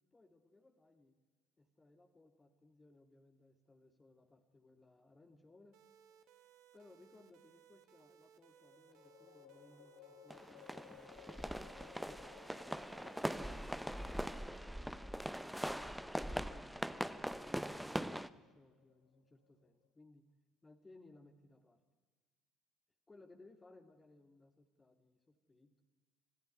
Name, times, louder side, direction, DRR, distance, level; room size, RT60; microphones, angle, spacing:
voice 1, 0.1-1.2 1.6-5.8 6.7-12.7 15.0-20.2 20.6-21.8 23.1-25.8, left 2 dB, 20° left, 5 dB, 2.3 m, -64 dB
sound 1, 5.5-6.3 8.6-19.9, left 12 dB, 70° left, 1.3 m, -62 dB
sound 2, 5.7-14.3, right 9 dB, 60° right, 1.9 m, -65 dB
sound 3, 10.3-18.3, equal, ahead, 0.9 m, -42 dB
25.5 x 15.5 x 9.7 m, 1.4 s
figure-of-eight pair, 55°, 0 cm